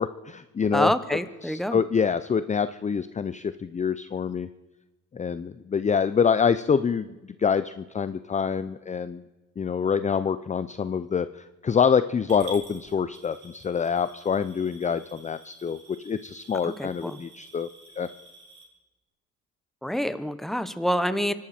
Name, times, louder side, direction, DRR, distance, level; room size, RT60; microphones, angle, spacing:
voice 1, 0.0-4.5 5.1-9.2 9.6-17.7 18.0-18.1, left 6 dB, 25° left, 13 dB, 0.5 m, -26 dB
voice 2, 0.7-1.8 16.6-17.2 19.8-21.3, equal, ahead, 12 dB, 1.1 m, -27 dB
Coin (dropping) / Glass, 12.3-18.6, right 2 dB, 80° right, 4.7 m, -49 dB
24.5 x 12.0 x 4.3 m, 1.1 s
cardioid pair, 90°, 30 cm